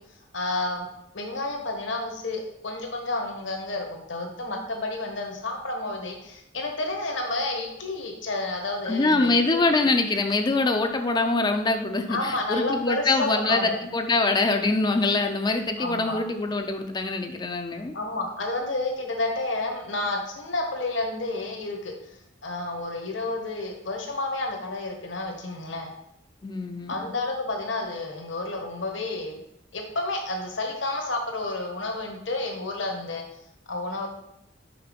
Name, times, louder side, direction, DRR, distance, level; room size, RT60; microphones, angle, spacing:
voice 1, 0.3-0.9 1.1-9.6 12.1-13.8 15.8-16.2 17.9-21.9 22.4-25.9 26.9-29.4 29.7-33.2 33.7-34.1, left 2 dB, 70° left, 2 dB, 1.2 m, -30 dB
voice 2, 8.9-17.9 26.4-27.1, left 3 dB, 20° left, 5 dB, 0.4 m, -24 dB
5.8 x 3.8 x 5.1 m, 0.80 s
head